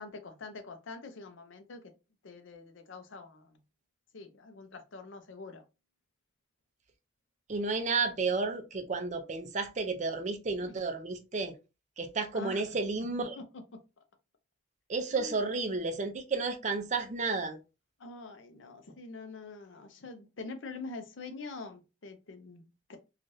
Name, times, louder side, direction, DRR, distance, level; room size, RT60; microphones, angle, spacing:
voice 1, 0.0-1.8 2.2-3.6 4.1-5.6 10.6-10.8 12.3-12.8 13.4-13.8 15.1-15.4 18.0-23.0, left 3 dB, 75° left, 0.6 m, -45 dB
voice 2, 7.5-11.5 12.0-13.4 14.9-17.6, right 4 dB, 35° right, 0.5 m, -32 dB
3.2 x 2.4 x 2.6 m
head